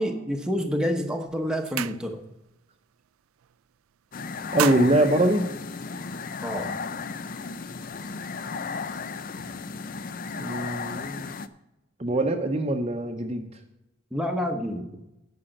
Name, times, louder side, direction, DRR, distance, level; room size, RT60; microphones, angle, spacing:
voice 1, 0.0-2.2 6.4-6.7 14.1-14.8, equal, 5° right, 3 dB, 0.9 m, -28 dB
sound 1, 0.8-1.0 1.3-2.5 2.8-3.1 3.4-4.0 4.3-6.2, right 11 dB, 85° right, 0.4 m, -34 dB
sound 2, 4.1-11.5, left 5 dB, 40° left, 0.4 m, -34 dB
voice 2, 4.5-5.5 10.4-11.3 12.0-13.6, right 1 dB, 30° right, 5 dB, 0.7 m, -23 dB
10.0 x 5.6 x 7.7 m, 0.93 s
head